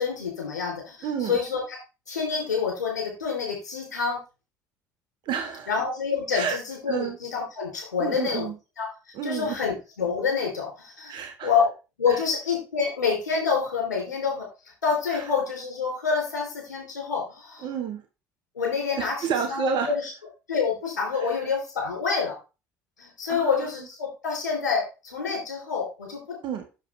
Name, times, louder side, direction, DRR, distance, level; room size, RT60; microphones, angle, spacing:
voice 1, 0.0-1.6 2.1-4.2 5.7-8.5 8.8-8.9 9.2-11.2 11.4-11.7 12.0-14.4 14.8-17.7 18.5-20.1 20.5-22.3 23.0-26.2, left 5 dB, 85° left, 0 dB, 3.3 m, -27 dB
voice 2, 1.0-1.4 5.2-5.7 6.3-6.6 6.9-7.2 8.0-8.5 9.1-9.6 11.1-11.5 12.1-12.2 15.1-15.2 17.6-18.0 19.0-19.9 21.1-21.3 23.3-23.7 26.4-26.7, right 7 dB, 55° right, 6 dB, 1.3 m, -30 dB
7.7 x 6.7 x 3.3 m, 0.30 s
hypercardioid pair, 60°, 9 cm